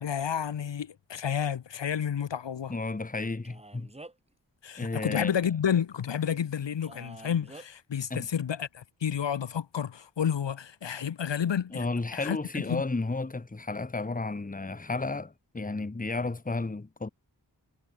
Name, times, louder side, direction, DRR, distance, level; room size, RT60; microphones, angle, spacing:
voice 1, 0.0-2.7 4.6-11.9 12.1-12.8, left 8 dB, 80° left, 0.7 m, -30 dB
voice 2, 2.7-3.9 4.8-5.3 8.1-8.3 11.7-17.1, left 3 dB, 20° left, 0.9 m, -32 dB
Male speech man speaking, 3.4-4.3 6.8-7.7, right 2 dB, 15° right, 0.8 m, -47 dB
wide cardioid pair, 40°, 43 cm